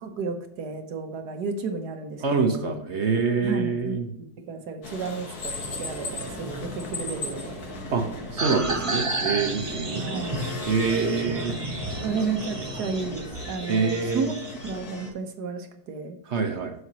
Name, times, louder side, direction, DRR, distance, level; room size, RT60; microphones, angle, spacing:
voice 1, 0.0-2.8 3.4-7.6 10.0-10.4 12.0-16.2, right 4 dB, 65° right, 5 dB, 1.5 m, -33 dB
voice 2, 2.2-4.1 7.9-8.1 8.3-10.0 10.7-11.6 12.0-12.1 13.7-14.3 16.3-16.7, right 4 dB, 50° right, 4 dB, 1.0 m, -25 dB
sound 1, 4.8-15.1, left 3 dB, 60° left, 1.6 m, -38 dB
sound 2, 5.5-13.3, right 2 dB, 90° right, 1.6 m, -40 dB
sound 3, 8.4-14.7, right 2 dB, 25° right, 0.7 m, -32 dB
7.9 x 6.3 x 2.9 m, 0.78 s
omnidirectional pair, 1.9 m